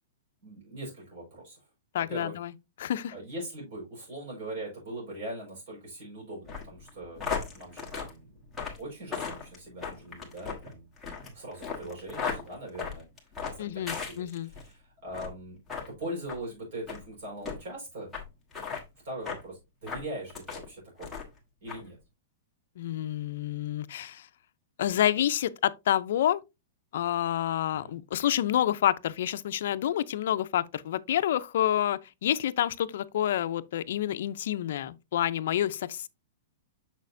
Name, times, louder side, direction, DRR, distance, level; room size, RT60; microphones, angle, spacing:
voice 1, 0.4-1.6 2.1-2.3 3.1-8.3 8.8-10.9 11.3-13.1 13.4-15.6 15.9-18.1 19.0-21.2 21.6-22.0 27.7-27.9, right 1 dB, 55° right, 4.7 m, -41 dB
voice 2, 1.9-2.5 2.8-3.1 13.6-14.5 22.8-24.3 24.8-26.4 26.9-36.1, left 11 dB, 55° left, 0.5 m, -28 dB
sound 1, 6.4-14.7 15.1-15.4 15.7-15.9 16.3-16.4 16.9-17.0 17.4-17.6 18.1-18.2 18.5-18.8 19.3-19.4 19.8-20.7 21.0-21.4 21.7-21.8, left 6 dB, 5° left, 1.3 m, -36 dB
6.5 x 6.3 x 2.6 m
supercardioid pair, 170°, 0 cm